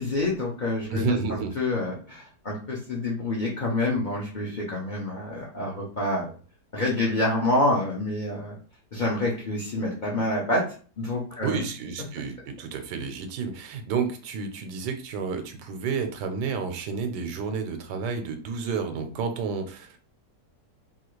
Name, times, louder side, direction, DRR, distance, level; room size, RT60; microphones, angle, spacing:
voice 1, 0.0-6.3 6.7-8.6 8.9-10.6 11.0-11.6, left 1 dB, 75° left, -4 dB, 0.4 m, -27 dB
voice 2, 0.9-1.5 11.4-20.0, right 5 dB, 85° right, 7 dB, 1.2 m, -30 dB
2.9 x 2.4 x 3.0 m, 0.40 s
omnidirectional pair, 1.8 m